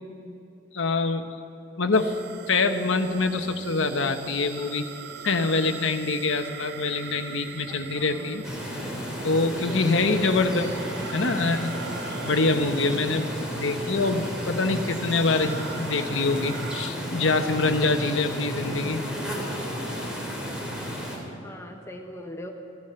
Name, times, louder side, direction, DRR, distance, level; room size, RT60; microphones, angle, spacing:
voice 1, 0.7-1.3 1.8-2.1 2.5-4.9 5.2-8.4 9.2-10.8 11.1-11.8 12.2-13.3 13.5-19.0, left 3 dB, 75° left, 6 dB, 1.1 m, -25 dB
sound 1, 1.9-16.9, right 5 dB, 60° right, 0.7 m, -42 dB
voice 2, 7.7-8.6 9.7-10.6 21.4-22.5, left 1 dB, 15° left, 3 dB, 0.9 m, -41 dB
sound 2, 8.4-21.2, equal, 5° right, 3.2 m, -33 dB
16.0 x 13.0 x 6.9 m, 3.0 s
head